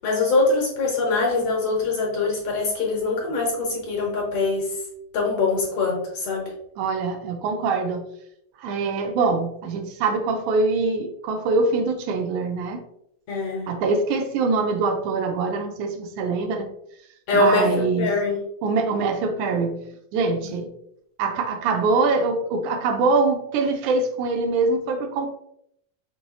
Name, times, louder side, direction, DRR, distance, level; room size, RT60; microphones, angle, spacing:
voice 1, 0.0-4.7 5.1-6.5 13.3-13.8 17.3-17.7 18.0-18.4 20.4-20.5, left 3 dB, 65° left, -1 dB, 1.8 m, -23 dB
voice 2, 6.8-8.1 8.6-12.8 13.7-16.7 17.3-18.2 18.6-19.9 20.1-20.7 21.2-25.3, right 3 dB, 80° right, 5 dB, 1.9 m, -23 dB
6.0 x 3.0 x 2.3 m, 0.74 s
omnidirectional pair, 3.4 m